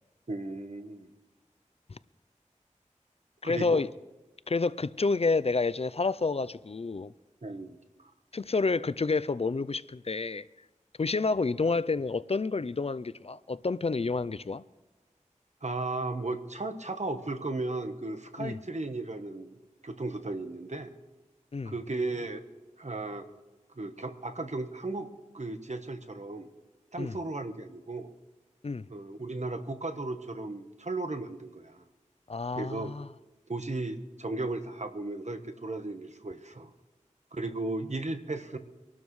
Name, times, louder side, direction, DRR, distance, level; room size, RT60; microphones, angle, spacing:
voice 1, 0.3-1.1 3.4-3.8 7.4-8.1 15.6-19.5 19.8-20.9 21.6-22.4 22.8-23.3 23.8-25.1 25.3-26.5 26.9-28.1 28.9-31.8 32.5-32.9 33.5-36.7 37.3-38.6, right 2 dB, 60° right, 1.1 m, -35 dB
voice 2, 3.4-3.9 4.5-7.1 8.3-10.5 11.0-14.6 18.4-18.6 21.5-21.7 27.0-27.1 28.6-28.8 32.3-33.1, left 4 dB, 50° left, 0.4 m, -29 dB
25.0 x 12.5 x 3.2 m
wide cardioid pair, 45°, 13 cm